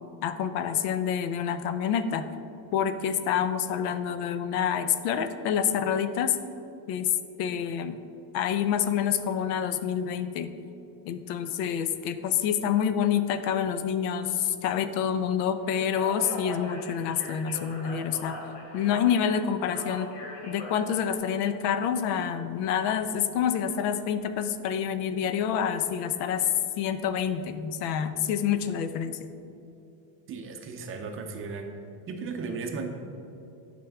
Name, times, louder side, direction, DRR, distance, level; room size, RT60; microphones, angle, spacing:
voice 1, 0.2-2.2 2.7-6.4 6.9-7.1 7.4-8.0 8.3-10.5 11.1-18.4 18.7-20.1 20.4-26.5 26.8-29.2, left 8 dB, 85° left, 11 dB, 0.7 m, -27 dB
Speech, 15.8-21.2, left 2 dB, 70° left, 1.8 m, -41 dB
voice 2, 30.3-31.7 32.1-32.9, right 4 dB, 30° right, 3 dB, 0.5 m, -35 dB
11.0 x 5.2 x 3.5 m, 2.9 s
cardioid pair, 160°, 48 cm